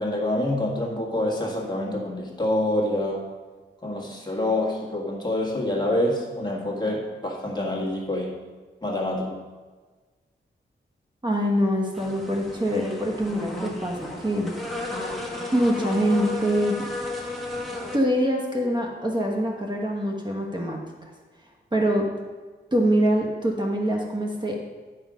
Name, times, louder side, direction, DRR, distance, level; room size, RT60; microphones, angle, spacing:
voice 1, 0.0-3.2 3.8-8.4 8.8-9.4, left 1 dB, 20° left, -2 dB, 1.8 m, -26 dB
voice 2, 11.2-14.5 15.5-16.8 17.9-20.8 21.7-22.1 22.7-24.6, equal, 25° right, -1 dB, 1.2 m, -24 dB
sound 1, 11.9-18.0, left 2 dB, ahead, 1.5 m, -33 dB
10.5 x 5.6 x 5.0 m, 1.4 s
wide cardioid pair, 105°, 19 cm